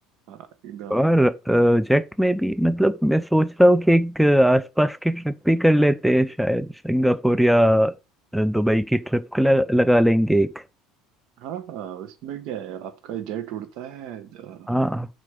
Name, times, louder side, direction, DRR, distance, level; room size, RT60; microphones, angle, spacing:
voice 1, 0.3-1.1 11.4-14.7, right 10 dB, 60° right, 1.4 m, -35 dB
voice 2, 0.9-7.9 8.3-10.6 14.7-15.1, equal, ahead, 0.5 m, -19 dB
7.6 x 5.0 x 5.3 m
hypercardioid pair, 75°, 0 cm